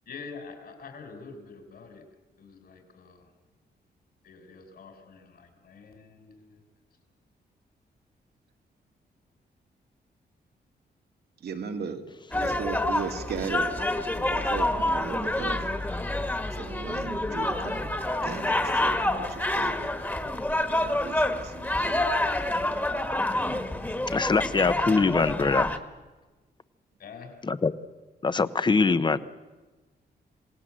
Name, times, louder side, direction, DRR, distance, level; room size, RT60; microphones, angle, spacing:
voice 1, 0.1-2.0 2.4-3.3 4.2-6.6 27.0-27.4, left 4 dB, 65° left, 6 dB, 4.7 m, -46 dB
voice 2, 11.4-12.0 12.3-13.7 14.3-15.7 16.5-18.0 18.2-19.8 20.6-22.1, right 6 dB, 75° right, 6 dB, 2.3 m, -37 dB
sound 1, 12.3-25.8, left 1 dB, 10° left, 1.5 m, -28 dB
voice 3, 24.1-25.8 27.5-27.7 28.2-29.2, left 4 dB, 25° left, 14 dB, 0.8 m, -23 dB
27.5 x 18.0 x 7.5 m, 1.3 s
wide cardioid pair, 135°, 17 cm